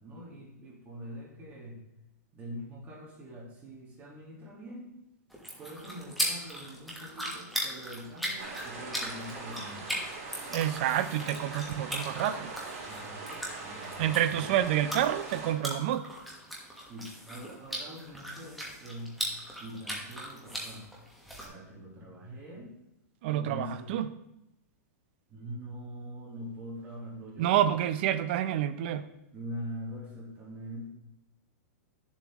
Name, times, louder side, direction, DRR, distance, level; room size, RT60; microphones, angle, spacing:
voice 1, 0.0-1.8 2.3-5.0 5.6-10.1 12.9-14.6 16.8-19.2 19.5-20.8 21.4-22.7 23.3-23.9 25.3-27.5 29.3-30.9, equal, 15° right, -3 dB, 1.7 m, -43 dB
sound 1, 5.3-21.5, equal, ahead, 1.2 m, -39 dB
sound 2, 8.4-15.5, right 3 dB, 55° right, 3.5 m, -42 dB
voice 2, 10.5-12.5 14.0-16.1 23.2-24.1 27.4-29.1, right 11 dB, 35° right, 12 dB, 0.5 m, -28 dB
12.0 x 7.2 x 3.0 m, 0.88 s
supercardioid pair, 175°, 9 cm